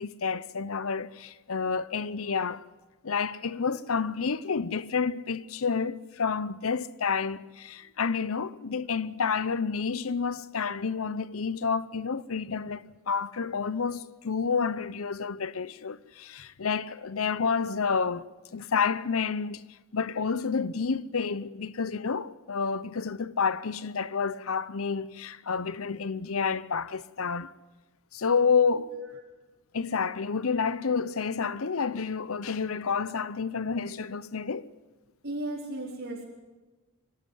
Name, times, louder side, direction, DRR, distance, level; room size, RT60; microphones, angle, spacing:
voice 1, 0.0-2.6 3.0-18.2 18.5-19.6 19.9-27.5 28.1-28.9 29.7-34.7, left 5 dB, 80° left, 0.8 m, -29 dB
voice 2, 28.7-29.0 35.2-36.2, right 1 dB, 65° right, 4.4 m, -35 dB
24.0 x 13.0 x 9.6 m
head